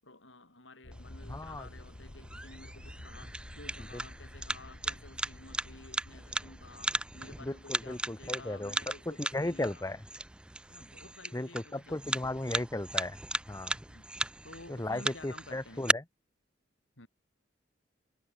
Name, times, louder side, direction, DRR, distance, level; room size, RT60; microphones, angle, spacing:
voice 1, 0.0-9.8 10.7-12.2 13.9-14.1 14.4-16.0 17.0-17.1, left 2 dB, 80° left, 7.4 m, -53 dB
sound 1, 0.8-9.1, left 1 dB, 50° left, 1.6 m, -50 dB
sound 2, 0.9-15.9, right 2 dB, 5° right, 0.3 m, -37 dB
voice 2, 1.3-1.7 7.4-8.7 9.1-10.0 11.3-13.2 13.5-13.7 14.7-16.0, left 1 dB, 15° left, 0.7 m, -35 dB
head